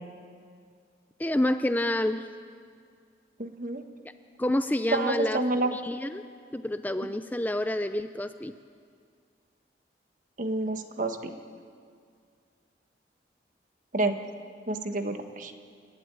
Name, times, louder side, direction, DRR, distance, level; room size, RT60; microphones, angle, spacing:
voice 1, 1.2-2.3 4.4-5.4 5.7-6.2 6.5-8.5, left 1 dB, 10° left, 10 dB, 0.5 m, -28 dB
voice 2, 3.4-3.8 4.9-5.7 10.4-11.3 13.9-14.2 14.7-15.5, right 2 dB, 45° right, 6 dB, 1.4 m, -29 dB
28.5 x 12.5 x 9.6 m, 2.2 s
head